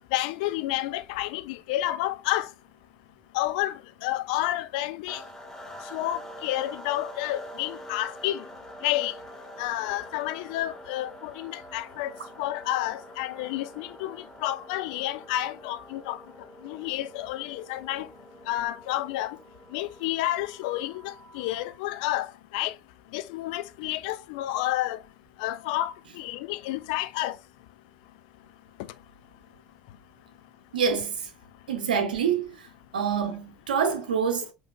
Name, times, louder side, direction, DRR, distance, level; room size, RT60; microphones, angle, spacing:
voice 1, 0.1-2.5 3.3-5.2 5.9-8.4 8.8-9.1 9.6-12.1 12.4-16.2 16.6-18.1 18.5-19.4 19.7-22.7 23.1-25.0 25.4-27.4, left 15 dB, 65° left, 0.4 m, -30 dB
sound 1, 5.1-21.8, equal, 10° left, 1.5 m, -46 dB
voice 2, 30.7-31.3 31.7-32.7 32.9-34.5, right 7 dB, 75° right, 0.9 m, -26 dB
7.3 x 3.1 x 2.2 m
figure-of-eight pair, 60°, 5 cm